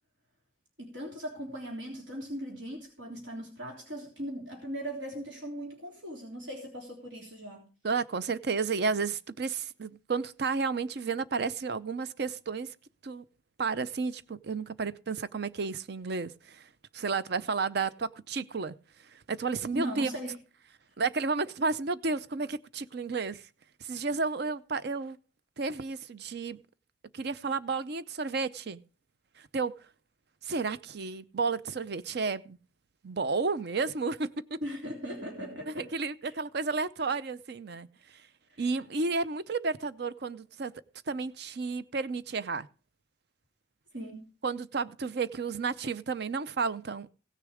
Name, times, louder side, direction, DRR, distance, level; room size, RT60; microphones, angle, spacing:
voice 1, 0.8-7.7 19.7-20.3 34.6-35.9 36.2-36.3 38.5-38.6 43.9-44.3, equal, 85° right, 3.5 m, -39 dB
voice 2, 7.8-12.7 13.0-13.2 13.6-18.7 19.1-20.1 21.0-23.4 23.8-25.2 25.6-26.6 27.1-28.8 29.5-29.7 30.4-32.6 33.0-34.5 35.7-37.9 38.6-40.7 41.1-42.7 44.4-47.1, right 4 dB, 65° right, 0.6 m, -32 dB
17.0 x 6.7 x 4.9 m
head